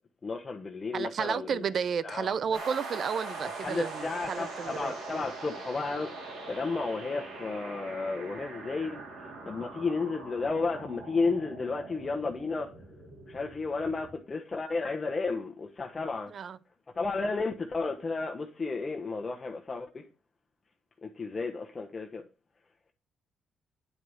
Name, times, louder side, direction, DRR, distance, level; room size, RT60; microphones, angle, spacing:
voice 1, 0.2-1.6 2.0-2.3 3.6-12.7 13.3-16.3 16.9-20.0 21.0-22.2, left 4 dB, 30° left, 1.2 m, -33 dB
voice 2, 0.9-5.0 16.3-16.6, right 7 dB, 55° right, 0.6 m, -32 dB
sound 1, 2.5-14.1, right 3 dB, 70° right, 4.2 m, -42 dB
9.7 x 4.7 x 7.1 m
cardioid pair, 90°, 0 cm